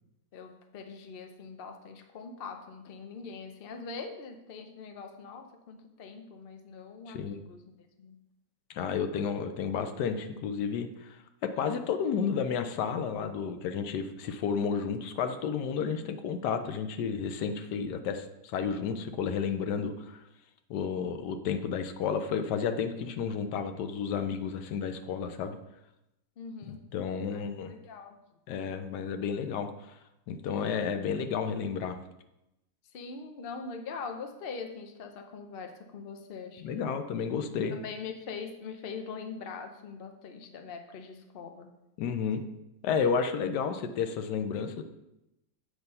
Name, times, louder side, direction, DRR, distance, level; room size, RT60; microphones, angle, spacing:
voice 1, 0.3-8.2 26.4-26.8 27.3-28.2 30.6-30.8 32.9-37.0 37.7-41.7, left 5 dB, 55° left, 5 dB, 0.6 m, -42 dB
voice 2, 7.1-7.4 8.7-20.2 20.7-25.6 26.9-27.7 28.5-29.9 30.3-32.0 36.6-37.8 42.0-42.4 42.8-44.8, left 6 dB, 80° left, 8 dB, 1.2 m, -31 dB
8.1 x 3.4 x 5.4 m, 0.90 s
omnidirectional pair, 1.8 m